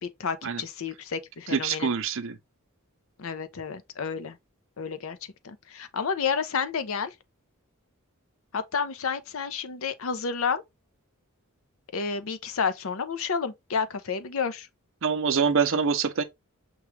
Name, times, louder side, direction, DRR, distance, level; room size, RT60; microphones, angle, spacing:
voice 1, 0.0-1.9 3.2-4.4 4.8-5.2 5.4-7.1 8.5-10.6 11.9-14.7, left 6 dB, 65° left, 0.6 m, -30 dB
voice 2, 1.5-2.4 15.0-16.2, right 6 dB, 60° right, 0.6 m, -25 dB
6.0 x 2.3 x 3.1 m
head